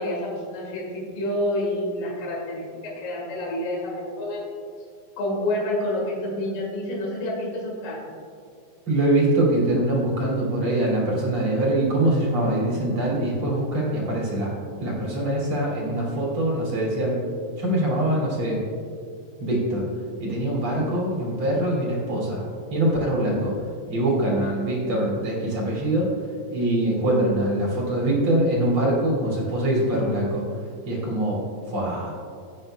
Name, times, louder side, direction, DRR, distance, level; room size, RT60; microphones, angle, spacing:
voice 1, 0.0-4.4 5.2-8.1, left 1 dB, 65° left, -4 dB, 3.7 m, -28 dB
voice 2, 8.9-14.5 14.8-17.2 17.6-18.6 19.4-19.9 20.2-22.4 22.7-23.6 23.9-26.1 26.5-30.5 30.8-31.4 31.7-32.1, right 1 dB, 40° right, -4 dB, 3.1 m, -23 dB
16.5 x 9.2 x 2.2 m, 2.2 s
omnidirectional pair, 4.2 m